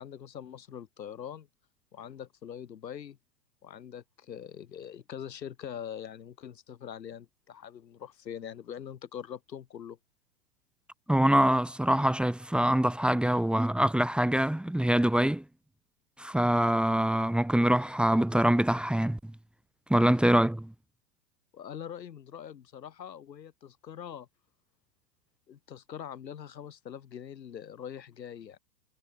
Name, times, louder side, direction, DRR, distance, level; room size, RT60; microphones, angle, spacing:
voice 1, 0.0-1.5 1.9-3.2 3.6-10.0 21.5-24.3 25.5-28.6, left 9 dB, 85° left, 6.9 m, -43 dB
voice 2, 11.1-15.4 16.2-19.3 19.9-20.7, right 1 dB, ahead, 1.2 m, -24 dB
hypercardioid pair, 130°, 49 cm